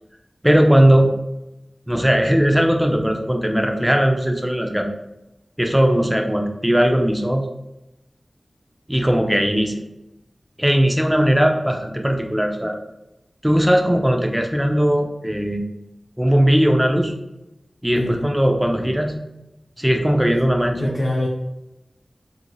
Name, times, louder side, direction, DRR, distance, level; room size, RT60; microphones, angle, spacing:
voice 1, 0.4-1.2 1.9-4.9 5.6-7.5 8.9-9.8 10.6-12.8 13.4-15.6 16.2-17.1 17.8-19.2 19.8-20.9, equal, 10° right, 3 dB, 0.5 m, -18 dB
voice 2, 18.0-18.3 20.8-21.3, left 1 dB, 55° left, -5 dB, 0.7 m, -23 dB
3.0 x 2.6 x 3.0 m, 0.93 s
wide cardioid pair, 55°, 0 cm